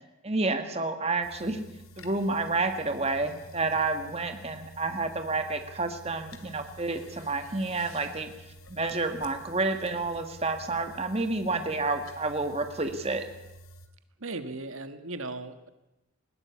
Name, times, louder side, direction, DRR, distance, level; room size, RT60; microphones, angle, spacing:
voice 1, 0.2-1.6 2.0-8.3 8.7-13.2, right 3 dB, 30° right, 7 dB, 1.7 m, -29 dB
sound 1, 1.2-13.9, equal, 85° left, 2.4 m, -50 dB
voice 2, 14.2-15.7, right 2 dB, 75° right, 10 dB, 1.6 m, -37 dB
20.5 x 16.5 x 8.4 m, 0.98 s
head